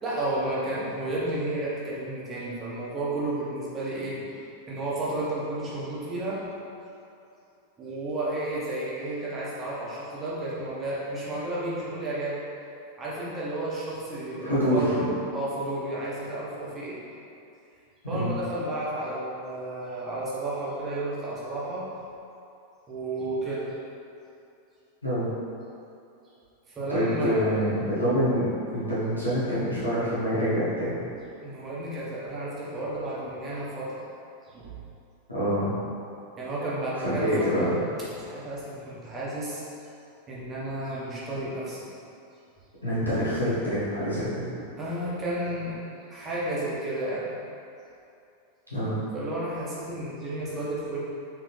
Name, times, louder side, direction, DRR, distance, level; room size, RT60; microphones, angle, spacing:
voice 1, 0.0-4.2 4.7-6.4 7.8-12.4 13.0-15.1 15.3-17.0 18.1-21.8 22.9-23.7 26.7-27.6 31.4-33.9 34.5-34.7 36.4-37.7 38.1-39.6 40.3-41.9 44.8-45.8 46.1-47.4 49.1-51.0, right 1 dB, 25° right, -7 dB, 1.1 m, -32 dB
voice 2, 14.4-15.1 18.1-18.4 25.0-25.3 26.9-28.4 28.7-31.0 35.3-35.7 37.0-37.8 42.8-44.5 48.7-49.0, equal, 85° left, -11 dB, 1.4 m, -26 dB
4.1 x 3.3 x 3.3 m, 2.6 s
figure-of-eight pair, 90°, 0 cm